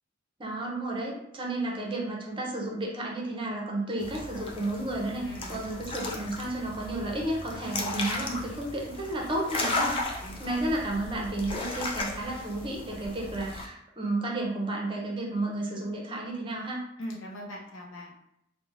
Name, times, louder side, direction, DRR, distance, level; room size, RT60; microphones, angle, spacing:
voice 1, 0.4-10.0 10.4-16.8, right 2 dB, 25° right, -2 dB, 0.6 m, -32 dB
sound 1, 4.0-13.7, left 2 dB, 25° left, 0.3 m, -35 dB
voice 2, 5.2-5.9 10.2-10.6 17.0-18.1, equal, 85° left, -1 dB, 0.7 m, -41 dB
3.2 x 2.1 x 2.5 m, 0.77 s
head